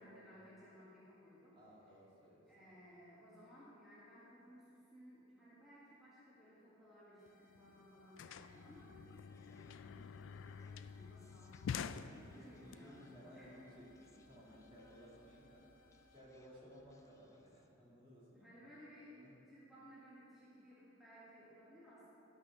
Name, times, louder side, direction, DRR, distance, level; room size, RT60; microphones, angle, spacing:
voice 1, 0.0-1.6 2.5-13.6 18.3-22.1, equal, ahead, -10 dB, 1.6 m, -60 dB
voice 2, 1.5-2.7 12.3-15.6 16.1-18.5 19.2-19.3, equal, 25° right, -6 dB, 2.3 m, -59 dB
sound 1, 7.2-16.2, left 4 dB, 40° left, 1.3 m, -71 dB
sound 2, 7.3-7.4 7.6-12.7, left 7 dB, 65° left, 0.3 m, -47 dB
Human voice, 8.3-17.8, left 1 dB, 15° left, 0.5 m, -68 dB
12.0 x 6.0 x 6.2 m, 3.0 s
head